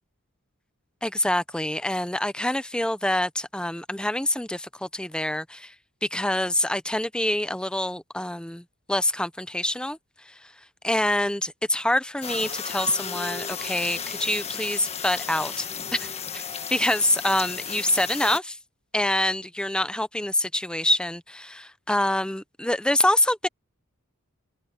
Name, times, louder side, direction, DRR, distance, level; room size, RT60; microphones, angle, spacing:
voice 1, 1.0-5.7 6.0-10.0 10.3-10.4 10.8-16.4 16.7-18.6 18.9-23.5, left 1 dB, 5° left, 0.7 m, -26 dB
sound 1, 12.2-18.4, left 7 dB, 30° left, 1.5 m, -34 dB
head